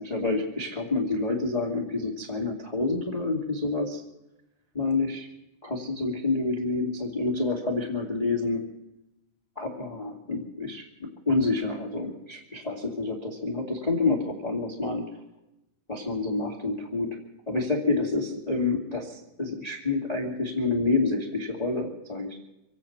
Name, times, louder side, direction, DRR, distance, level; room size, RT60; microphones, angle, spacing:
voice 1, 0.0-4.0 4.7-5.3 5.6-8.6 9.5-15.0 15.9-17.1 17.5-22.4, left 3 dB, 20° left, 0 dB, 1.0 m, -28 dB
27.0 x 9.0 x 5.8 m, 0.94 s
omnidirectional pair, 4.8 m